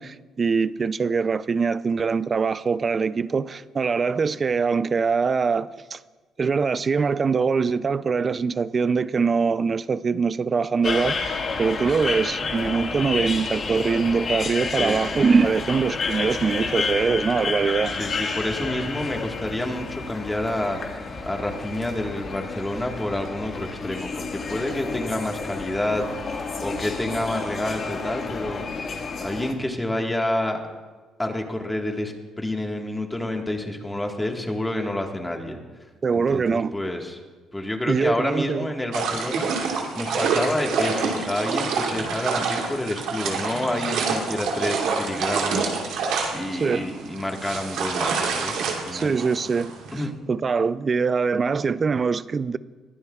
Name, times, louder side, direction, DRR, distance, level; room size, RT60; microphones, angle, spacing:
voice 1, 0.0-6.0 6.4-18.0 36.0-36.7 37.9-38.7 46.6-46.8 48.9-52.6, right 5 dB, 30° right, 0.4 m, -23 dB
sound 1, 10.8-29.5, left 4 dB, 40° left, 1.7 m, -30 dB
voice 2, 17.9-28.9 29.2-30.6 31.2-35.6 36.1-37.2 37.5-49.2 49.9-50.1, left 1 dB, 10° left, 1.6 m, -29 dB
sound 2, 38.9-50.0, right 5 dB, 85° right, 2.7 m, -27 dB
21.5 x 15.5 x 2.4 m
cardioid pair, 125°, 0 cm